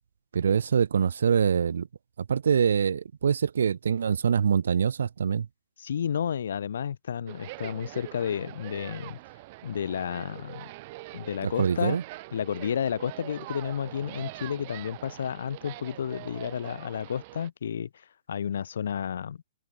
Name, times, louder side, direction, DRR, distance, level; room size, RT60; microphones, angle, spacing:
voice 1, 0.3-1.9 2.2-5.5 11.4-12.0, right 7 dB, 85° right, 0.4 m, -24 dB
voice 2, 5.8-9.2 9.6-10.7 11.1-12.0 12.3-17.9 18.3-19.4, left 8 dB, 70° left, 0.3 m, -31 dB
sound 1, 7.3-17.5, right 21 dB, 35° right, 3.5 m, -43 dB
hypercardioid pair, 170°, 0 cm